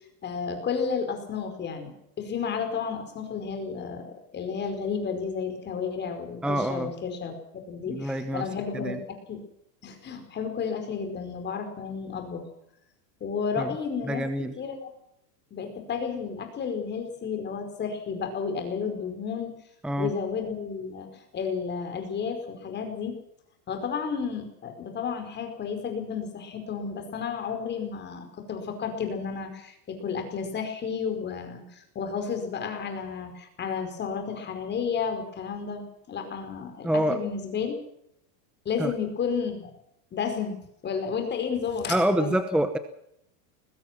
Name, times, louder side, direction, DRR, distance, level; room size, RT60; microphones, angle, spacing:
voice 1, 0.2-7.3 7.7-9.4 9.8-12.4 13.2-14.2 14.6-14.9 15.5-19.5 20.0-23.2 23.7-37.7 38.6-39.7 40.1-42.4, left 6 dB, 20° left, 6 dB, 4.9 m, -32 dB
voice 2, 6.4-6.9 7.9-8.5 8.7-9.0 13.6-13.7 14.0-14.5 19.8-20.1 36.8-37.2 38.8-38.9 41.9-42.8, right 1 dB, ahead, 9 dB, 0.9 m, -26 dB
21.5 x 20.5 x 6.0 m, 0.76 s
supercardioid pair, 155°, 47 cm